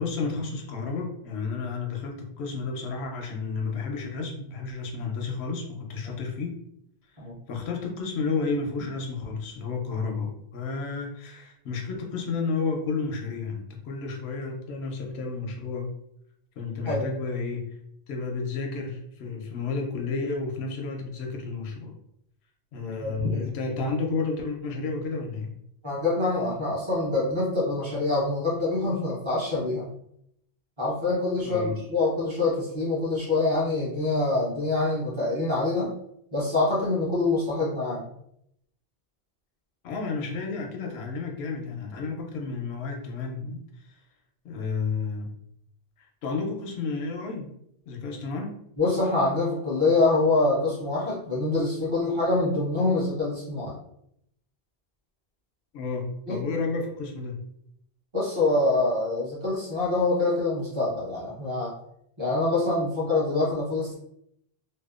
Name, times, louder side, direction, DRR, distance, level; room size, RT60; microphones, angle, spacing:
voice 1, 0.0-6.6 7.5-15.9 16.6-17.8 18.1-21.9 22.7-25.6 31.4-31.8 39.8-43.9 44.4-45.4 46.0-47.5 47.9-48.6 55.7-57.4, left 4 dB, 80° left, 2 dB, 0.8 m, -31 dB
voice 2, 23.0-23.5 25.8-29.9 30.8-35.9 36.3-38.0 48.8-53.7 56.3-56.4 58.1-61.7 62.2-63.9, left 2 dB, 30° right, -6 dB, 0.7 m, -25 dB
2.7 x 2.1 x 2.3 m, 0.74 s
omnidirectional pair, 1.1 m